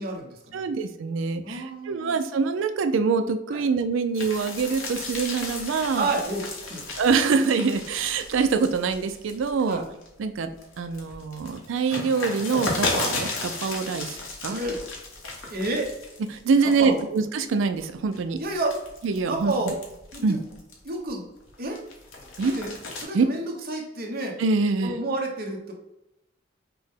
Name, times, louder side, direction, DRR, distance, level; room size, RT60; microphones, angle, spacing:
voice 1, 0.0-0.7 1.4-2.2 3.5-3.6 5.9-6.8 9.6-9.8 14.4-14.8 15.5-15.9 16.6-17.1 18.4-18.8 19.2-19.8 20.1-20.4 20.8-21.2 21.6-21.8 22.4-22.7 23.0-24.4 24.8-25.7, right 2 dB, 50° right, 0 dB, 0.8 m, -30 dB
voice 2, 0.5-6.1 7.0-9.8 10.2-10.5 10.8-14.2 14.4-14.6 16.3-18.4 19.0-19.5 20.2-20.4 22.4-22.5 23.1-23.2 24.4-25.0, right 4 dB, 70° right, 9 dB, 0.4 m, -24 dB
sound 1, 4.1-10.1 10.5-16.4 16.7-17.2 17.8-21.1 21.5-23.0, left 3 dB, 85° left, 1.1 m, -34 dB
5.8 x 2.1 x 3.5 m, 0.90 s
head